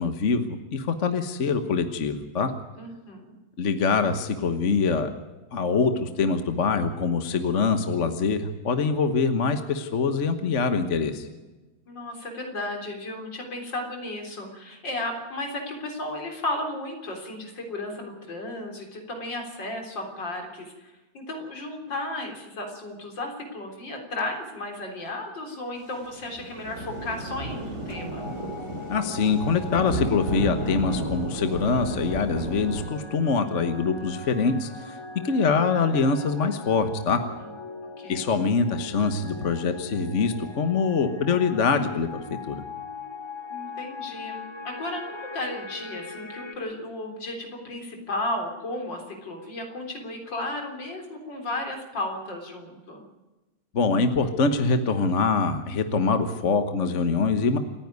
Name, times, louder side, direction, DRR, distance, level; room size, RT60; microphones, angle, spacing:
voice 1, 0.0-2.5 3.6-5.1 5.5-11.3 28.9-35.0 35.2-37.2 38.1-42.6 53.7-57.6, left 4 dB, 40° left, 8 dB, 1.3 m, -24 dB
voice 2, 2.8-3.3 11.9-28.3 38.0-38.2 43.5-53.0, left 1 dB, 60° left, 3 dB, 4.4 m, -34 dB
sound 1, 26.0-32.9, right 1 dB, 35° right, 3.1 m, -32 dB
sound 2, 27.9-46.6, left 4 dB, 15° left, 1.2 m, -40 dB
28.0 x 10.0 x 9.6 m, 1.2 s
omnidirectional pair, 2.2 m